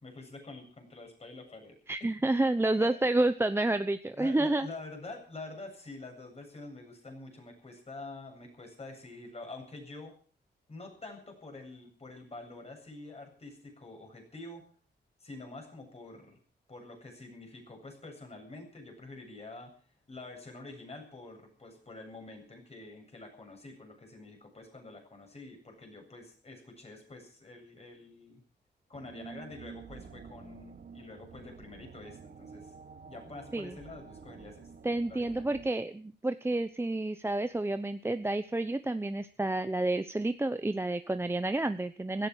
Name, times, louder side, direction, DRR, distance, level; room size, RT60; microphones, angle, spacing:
voice 1, 0.0-1.8 2.8-2.9 4.2-10.1 10.7-14.7 15.2-16.4 16.7-19.7 20.1-28.4 28.9-32.7 33.1-34.7 35.1-35.5, left 2 dB, 35° left, 3 dB, 7.9 m, -47 dB
voice 2, 1.9-4.7 33.5-33.8 34.8-42.3, right 2 dB, 15° right, 10 dB, 0.8 m, -29 dB
sound 1, 28.9-35.7, right 5 dB, 50° right, 1.8 m, -49 dB
16.5 x 13.5 x 6.4 m, 0.43 s
cardioid pair, 105°, 19 cm